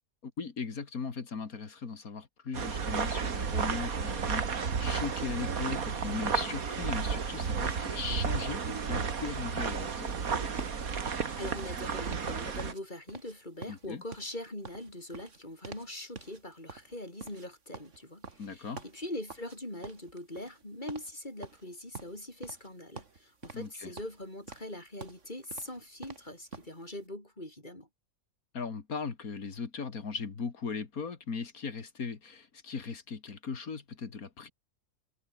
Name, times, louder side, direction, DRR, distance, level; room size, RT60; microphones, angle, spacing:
voice 1, 0.2-10.1 13.7-14.0 18.4-18.8 23.5-23.9 28.5-34.5, left 5 dB, 90° left, 2.6 m, -38 dB
sound 1, 2.5-12.7, right 6 dB, 90° right, 2.3 m, -32 dB
sound 2, 9.6-12.8 13.1-13.4 13.6-16.4 16.7-19.6 19.8-20.6 20.9-21.1 21.4-22.7 23.0-23.7 24.0-26.7, right 4 dB, 60° right, 2.5 m, -47 dB
voice 2, 11.4-27.9, left 1 dB, 35° left, 7.9 m, -42 dB
omnidirectional pair, 1.5 m